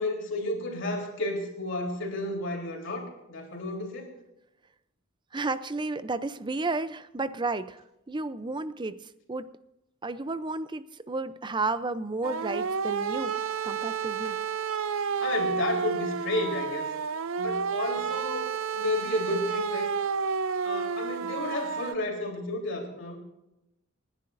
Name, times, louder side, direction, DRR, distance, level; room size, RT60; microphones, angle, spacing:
voice 1, 0.0-4.1 15.2-16.9 17.4-18.5 18.7-19.9 20.6-23.2, left 2 dB, 60° left, 0 dB, 3.7 m, -32 dB
voice 2, 5.3-9.0 9.3-9.5 10.0-13.4 13.6-14.4, right 3 dB, 20° right, 13 dB, 0.5 m, -32 dB
sound 1, 12.2-21.9, right 6 dB, 65° right, 0.5 m, -30 dB
29.0 x 10.5 x 2.6 m, 0.89 s
head